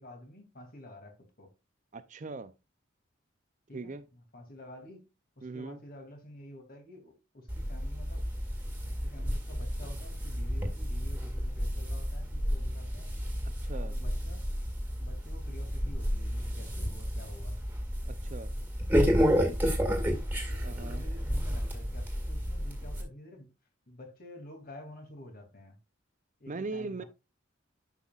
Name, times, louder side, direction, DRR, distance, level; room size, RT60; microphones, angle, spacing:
voice 1, 0.0-1.5 2.2-2.4 3.7-5.1 5.4-8.2 8.8-13.2 13.7-14.5 15.0-17.5 19.8-20.2 20.5-23.5 23.9-25.8 26.4-27.1, left 1 dB, 45° left, 2.6 m, -50 dB
voice 2, 1.9-2.5 3.7-4.0 5.4-5.8 13.6-14.0 18.1-18.5 20.6-21.1 26.5-27.0, right 3 dB, 40° right, 0.5 m, -39 dB
sound 1, 7.5-23.0, equal, 10° right, 2.0 m, -31 dB
11.0 x 5.8 x 2.4 m
head